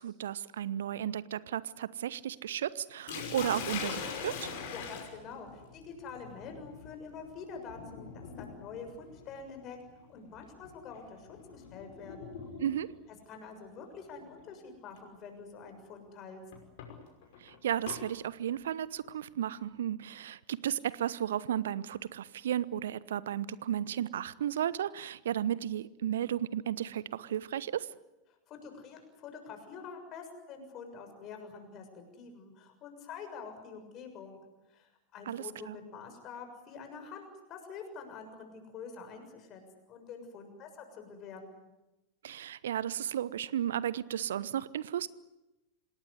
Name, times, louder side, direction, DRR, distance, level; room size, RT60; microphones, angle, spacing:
voice 1, 0.0-4.5 12.6-12.9 17.4-27.9 35.3-35.8 42.2-45.1, right 10 dB, 60° right, 20 dB, 0.9 m, -34 dB
Sink (filling or washing), 3.1-13.0 14.1-14.4 15.0-15.1 16.5-18.0, left 6 dB, 50° left, 5.6 m, -43 dB
voice 2, 4.7-9.8 10.1-12.3 13.3-16.4 28.5-34.4 34.7-39.6 39.9-41.7, left 5 dB, 35° left, 5 dB, 6.8 m, -46 dB
27.5 x 19.0 x 9.7 m, 1.0 s
figure-of-eight pair, 90°, 0 cm